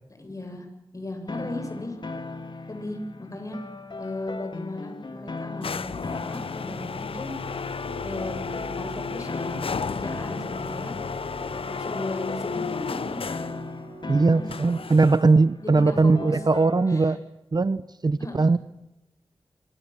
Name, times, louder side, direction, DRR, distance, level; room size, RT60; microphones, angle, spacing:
voice 1, 0.2-0.7 0.9-2.0 2.7-3.6 4.0-7.3 8.0-10.9 11.8-13.5 14.1-14.5 15.6-16.4 16.9-17.1 18.2-18.5, left 1 dB, 35° left, 7.8 m, -36 dB
sound 1, 1.3-17.2, left 3 dB, 55° left, 3.3 m, -39 dB
sound 2, 5.6-13.6 14.5-15.4, left 5 dB, 70° left, 1.0 m, -33 dB
Bowed string instrument, 6.9-15.2, right 5 dB, 80° right, 2.9 m, -45 dB
voice 2, 14.1-17.2 17.5-18.6, right 3 dB, 45° right, 0.9 m, -20 dB
26.5 x 24.5 x 7.3 m
wide cardioid pair, 75°, 10 cm